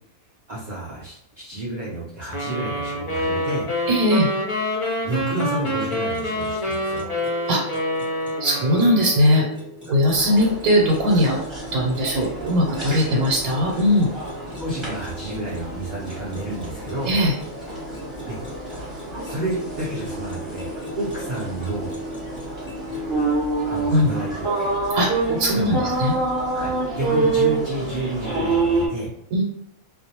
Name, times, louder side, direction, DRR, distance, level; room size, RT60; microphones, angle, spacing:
voice 1, 0.5-3.7 5.0-7.1 9.9-10.0 13.1-13.3 14.6-17.1 18.2-18.4 19.2-21.9 23.7-24.7 25.3-25.9 26.5-29.1, right 2 dB, 60° right, -6 dB, 0.4 m, -30 dB
sound 1, 2.3-9.5, left 1 dB, 55° left, 0.3 m, -27 dB
voice 2, 3.9-4.3 7.5-7.6 8.4-9.4 9.9-11.4 11.7-14.1 17.1-17.3 23.9-24.1 24.9-25.1 25.4-26.2 29.3-29.4, equal, 85° right, -3 dB, 1.1 m, -19 dB
sound 2, 5.3-23.1, left 1 dB, 5° right, 0.5 m, -40 dB
sound 3, 10.1-28.9, right 3 dB, 25° right, 0.8 m, -28 dB
2.4 x 2.0 x 2.7 m, 0.80 s
omnidirectional pair, 1.5 m